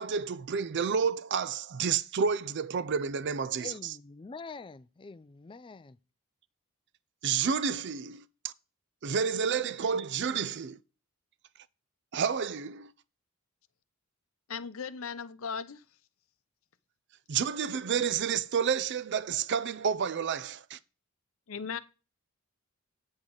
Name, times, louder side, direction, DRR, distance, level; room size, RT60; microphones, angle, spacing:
voice 1, 0.0-3.9 7.2-8.5 9.0-10.8 12.1-12.9 17.3-20.8, right 6 dB, 55° right, 0.4 m, -30 dB
voice 2, 3.6-6.0, left 4 dB, 25° left, 0.4 m, -45 dB
voice 3, 14.5-15.8 21.5-21.8, left 6 dB, 65° left, 0.7 m, -37 dB
8.8 x 8.0 x 3.8 m
head